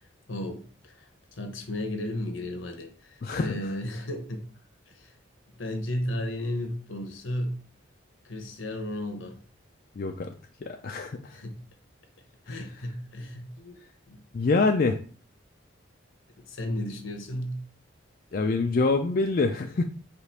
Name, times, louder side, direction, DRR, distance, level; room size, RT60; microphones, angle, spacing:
voice 1, 0.3-1.1 1.4-4.4 4.9-5.1 5.6-7.6 8.2-9.4 11.3-11.6 12.5-13.8 14.1-14.2 16.4-17.6, left 1 dB, 80° left, 1.0 m, -34 dB
voice 2, 10.0-10.3 10.6-11.2 12.5-12.6 14.3-15.0 18.3-19.8, left 3 dB, 45° left, 0.4 m, -25 dB
5.0 x 2.5 x 4.2 m
head